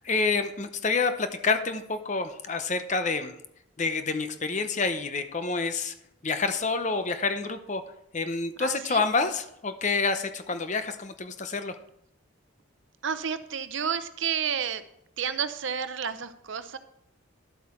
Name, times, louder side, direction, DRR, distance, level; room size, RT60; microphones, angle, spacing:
voice 1, 0.0-3.3 3.8-5.9 6.2-7.8 8.1-11.8, left 4 dB, 35° left, 9 dB, 0.7 m, -28 dB
voice 2, 8.6-9.0 13.0-14.8 15.2-16.8, right 7 dB, 65° right, 12 dB, 0.7 m, -31 dB
11.5 x 7.9 x 4.4 m, 0.77 s
head